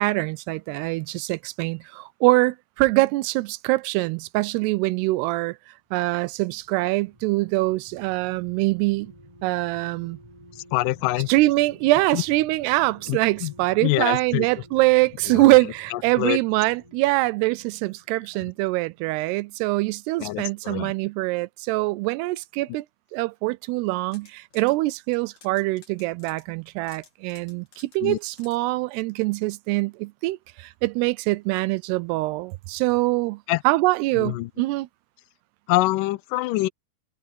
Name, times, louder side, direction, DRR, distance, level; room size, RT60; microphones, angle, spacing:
voice 1, 0.0-5.6 5.9-9.1 9.4-10.2 11.3-22.9 23.1-33.4 33.7-34.9, right 21 dB, 85° right, 2.6 m, -23 dB
sound 1, 6.0-19.0 19.4-19.6, equal, 5° right, 7.4 m, -50 dB
voice 2, 10.6-11.3 12.1-12.2 13.1-13.5 13.8-14.5 15.3-15.5 15.9-16.4 18.4-18.5 20.2-20.9 28.0-28.2 33.5-33.6 34.2-34.5 35.7-36.7, left 18 dB, 80° left, 1.9 m, -25 dB
sound 2, 23.8-24.8 25.1-28.6, left 5 dB, 50° left, 4.4 m, -53 dB
omnidirectional pair, 4.7 m